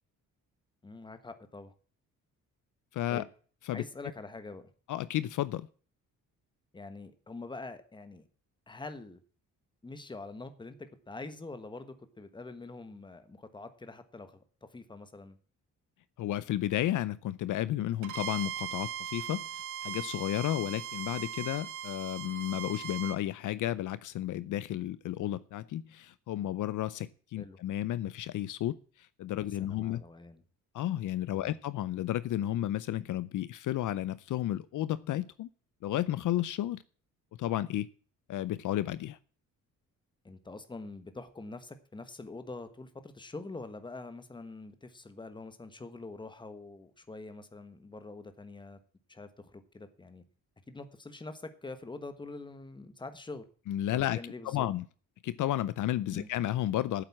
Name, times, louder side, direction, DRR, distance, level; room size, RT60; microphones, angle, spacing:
voice 1, 0.8-1.7 3.1-3.3 3.7-4.7 6.7-8.3 8.7-9.2 9.8-14.4 14.7-15.4 27.4-27.6 29.6-30.4 31.3-31.6 40.2-48.8 49.1-50.2 50.7-53.4 53.9-54.7 56.1-56.3, left 3 dB, 15° left, 10 dB, 1.2 m, -45 dB
voice 2, 2.9-3.2 3.6-3.8 4.9-5.7 16.2-30.0 30.7-35.5 35.8-36.8 37.4-37.9 38.3-39.2 53.7-54.2 54.4-54.8 55.2-57.0, left 13 dB, 65° left, 17 dB, 0.6 m, -32 dB
Bowed string instrument, 18.0-23.2, right 9 dB, 65° right, 1.1 m, -39 dB
9.0 x 7.7 x 8.5 m, 0.41 s
cardioid pair, 150°, 32 cm